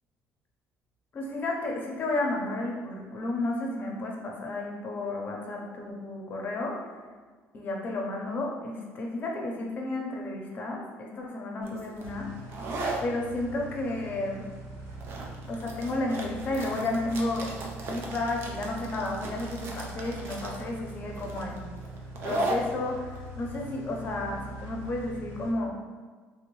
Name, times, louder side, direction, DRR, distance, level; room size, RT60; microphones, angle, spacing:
voice 1, 1.1-7.0 7.5-12.3 13.0-14.4 15.5-17.6 17.9-21.7 22.2-25.7, left 2 dB, 40° left, 0 dB, 0.6 m, -32 dB
sound 1, 11.6-25.0, right 1 dB, 50° right, 0.5 m, -37 dB
sound 2, 12.0-25.5, right 2 dB, 80° right, 0.9 m, -43 dB
3.5 x 2.6 x 3.0 m, 1.5 s
cardioid pair, 150°, 5 cm